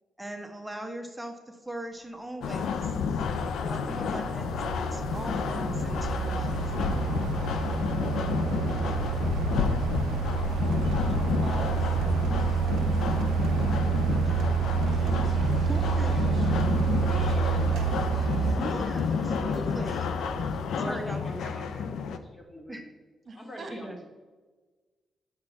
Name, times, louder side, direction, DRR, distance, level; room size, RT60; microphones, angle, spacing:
voice 1, 0.2-2.9 3.6-6.6 14.2-14.3 15.7-16.5 18.6-20.1 20.8-21.9 22.7-22.9 23.7-24.0, right 1 dB, 5° right, 3 dB, 1.0 m, -40 dB
sound 1, 2.4-22.2, left 6 dB, 85° left, 0.5 m, -30 dB
sound 2, 2.8-2.9 3.4-18.6, right 7 dB, 90° right, 0.4 m, -28 dB
voice 2, 10.8-14.2 15.6-16.6 17.0-18.0 18.4-19.0 23.2-23.8, right 3 dB, 45° right, 6 dB, 1.2 m, -45 dB
sound 3, 14.8-20.6, right 3 dB, 30° right, 1.4 m, -41 dB
voice 3, 20.7-21.7 22.1-22.9 23.3-24.1, equal, 25° left, 1 dB, 1.9 m, -41 dB
7.6 x 6.0 x 4.0 m, 1.3 s
cardioid pair, 90°, 0 cm